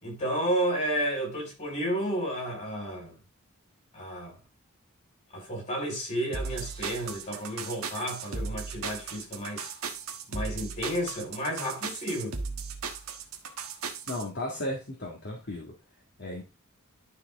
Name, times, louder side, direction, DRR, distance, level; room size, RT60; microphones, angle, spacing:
voice 1, 0.0-3.2 3.9-4.4 5.3-9.7 10.3-12.4, right 1 dB, 35° left, 4.3 m, -32 dB
sound 1, 6.3-14.2, right 5 dB, 75° right, 1.4 m, -36 dB
voice 2, 14.1-15.7 16.2-16.4, left 1 dB, 50° left, 1.9 m, -35 dB
11.5 x 4.5 x 3.6 m
head